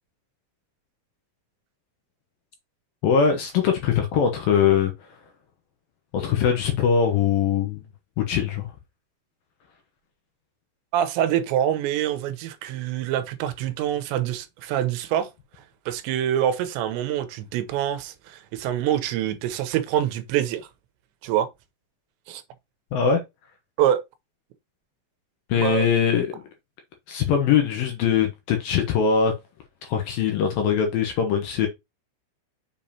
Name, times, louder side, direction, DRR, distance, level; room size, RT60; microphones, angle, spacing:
voice 1, 3.0-4.9 6.1-7.8 8.3-8.7 22.9-23.2 25.5-26.4 27.1-29.3 29.9-31.7, left 7 dB, 70° left, 2.4 m, -21 dB
voice 2, 10.9-15.3 15.9-20.7 21.2-21.5 22.3-22.4 23.8-24.0 25.6-25.9, right 11 dB, 85° right, 3.0 m, -25 dB
7.0 x 5.4 x 2.8 m
omnidirectional pair, 5.1 m